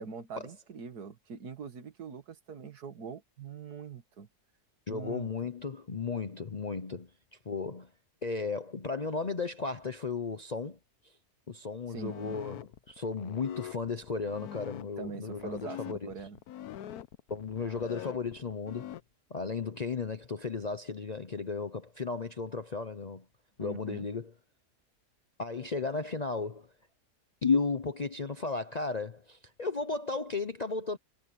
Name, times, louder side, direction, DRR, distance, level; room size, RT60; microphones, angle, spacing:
voice 1, 0.0-4.3 4.9-5.5 11.9-12.2 15.0-16.4 23.6-24.1, right 5 dB, 75° right, 2.1 m, -43 dB
voice 2, 4.9-7.1 7.5-7.9 8.2-10.8 11.5-16.1 17.3-18.9 19.3-23.2 23.6-24.3 25.4-26.7 27.4-31.0, left 4 dB, 40° left, 0.6 m, -34 dB
sound 1, 12.0-19.0, left 12 dB, 75° left, 1.2 m, -44 dB
omnidirectional pair, 1.7 m